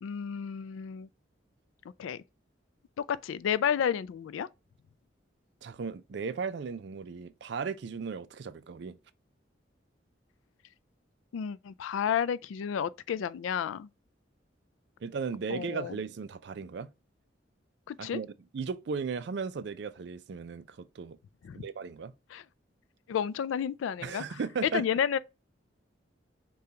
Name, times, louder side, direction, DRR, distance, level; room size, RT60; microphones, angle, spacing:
voice 1, 0.0-1.1 2.0-2.2 3.0-4.5 11.3-13.9 15.5-16.0 17.9-18.2 21.4-21.6 22.3-22.4 23.1-25.2, left 8 dB, 90° left, 0.3 m, -31 dB
voice 2, 5.6-9.0 15.0-16.9 18.0-21.2 21.5-22.1 24.0-24.8, right 5 dB, 60° right, 0.4 m, -36 dB
6.7 x 2.3 x 2.8 m
head